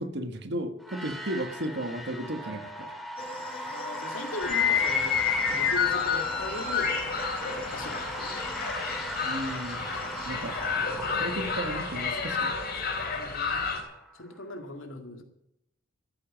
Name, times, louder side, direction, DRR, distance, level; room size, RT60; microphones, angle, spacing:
voice 1, 0.0-2.9 9.2-9.9 10.2-10.6 11.2-12.5, right 1 dB, 60° right, 7 dB, 1.5 m, -34 dB
sound 1, 0.8-14.5, equal, ahead, 2.2 m, -39 dB
voice 2, 3.2-5.2 5.5-7.0 7.5-8.5 10.2-10.7 13.2-13.8 14.1-15.2, left 2 dB, 90° left, 4 dB, 2.1 m, -40 dB
sound 2, 3.2-10.7, left 2 dB, 30° left, 3.0 m, -44 dB
sound 3, 4.4-13.8, left 6 dB, 50° left, 4.0 m, -29 dB
14.0 x 9.9 x 7.5 m, 0.83 s
head